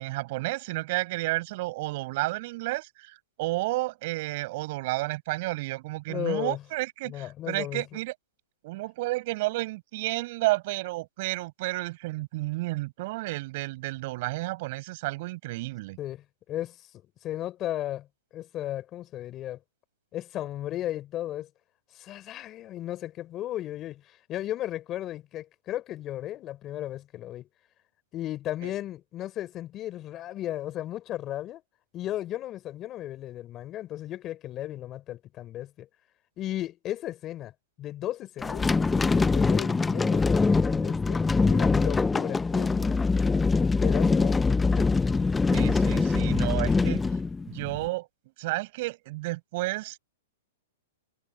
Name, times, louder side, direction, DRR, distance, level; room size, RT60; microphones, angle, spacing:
voice 1, 0.0-8.1 8.6-16.0 28.6-28.7 45.5-47.0 47.5-48.1 48.4-50.0, right 21 dB, 50° right, 5.9 m, -31 dB
voice 2, 6.1-6.6 7.1-8.0 16.0-16.8 17.2-18.1 18.3-19.6 20.1-21.5 21.9-27.5 28.1-31.6 31.9-35.9 36.4-37.5 37.8-41.2 41.5-43.1 43.6-45.1, left 13 dB, 30° left, 3.8 m, -35 dB
sound 1, 38.4-47.8, left 4 dB, 10° left, 0.5 m, -24 dB
hypercardioid pair, 135°, 0 cm